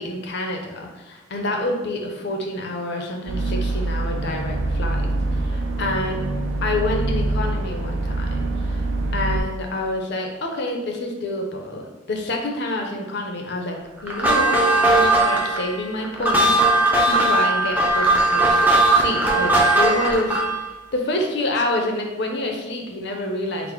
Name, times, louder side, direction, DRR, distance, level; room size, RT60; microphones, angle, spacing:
voice 1, 0.0-5.1 5.4-6.2 6.6-8.9 9.1-16.6 17.0-20.4 20.9-23.7, left 1 dB, 55° left, 2 dB, 0.6 m, -27 dB
sound 1, 3.3-9.4, right 2 dB, 65° right, 0.4 m, -24 dB
sound 2, 14.1-20.7, right 2 dB, 10° right, 0.5 m, -18 dB
3.9 x 2.0 x 4.4 m, 1.1 s
head